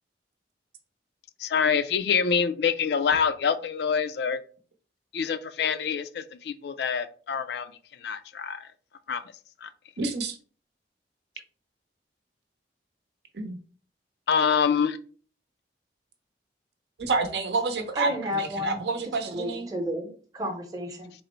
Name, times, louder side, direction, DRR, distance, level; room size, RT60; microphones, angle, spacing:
voice 1, 1.4-4.4 5.1-7.7 8.0-8.7 9.1-9.2 9.6-9.7 14.3-15.0, left 6 dB, 65° left, 12 dB, 0.3 m, -26 dB
voice 2, 10.0-10.4 13.3-13.6 17.0-19.7, right 3 dB, 70° right, 6 dB, 0.7 m, -29 dB
voice 3, 17.9-21.1, equal, 20° right, 2 dB, 0.8 m, -32 dB
3.8 x 2.0 x 4.3 m, 0.41 s
head